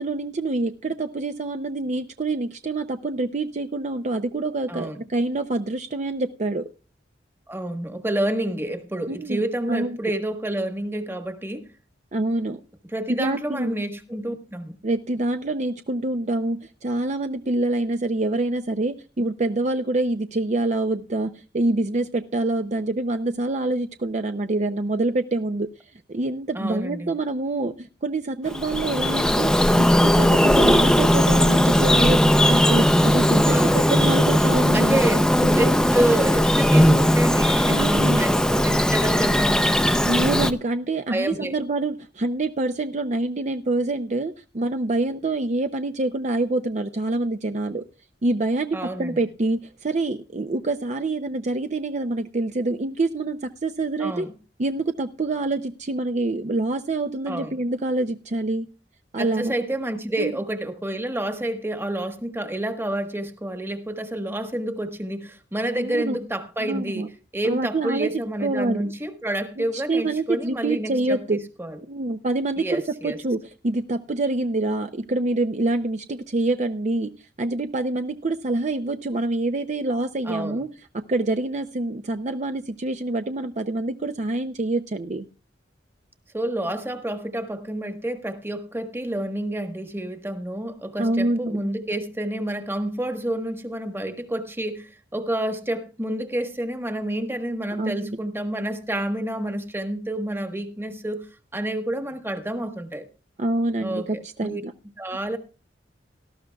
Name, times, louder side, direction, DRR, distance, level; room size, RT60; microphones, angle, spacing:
voice 1, 0.0-6.7 9.1-9.4 9.7-10.0 12.1-12.6 13.1-13.7 14.8-25.7 26.1-35.0 35.4-35.7 36.9-37.0 37.7-38.3 40.0-47.8 48.2-54.3 54.6-58.7 59.1-59.5 60.2-60.3 65.7-66.2 66.6-67.1 67.4-68.1 68.4-68.9 69.6-71.4 71.9-73.4 73.6-77.1 77.4-80.7 80.9-85.2 91.0-91.6 97.8-98.2 103.4-104.7, right 2 dB, 40° right, 0.5 m, -26 dB
voice 2, 4.7-5.0 7.5-11.7 12.9-14.8 26.5-27.1 33.5-33.8 34.7-35.2 35.5-35.7 35.9-39.9 41.1-41.5 48.7-49.2 54.0-54.3 57.3-57.6 59.2-71.8 72.6-73.2 80.2-80.6 86.3-101.3 101.5-103.1 103.8-104.6 105.0-105.4, right 1 dB, 15° right, 1.3 m, -29 dB
Bird vocalization bird call bird song, 28.5-40.5, equal, 5° left, 0.6 m, -18 dB
18.0 x 13.0 x 2.3 m
head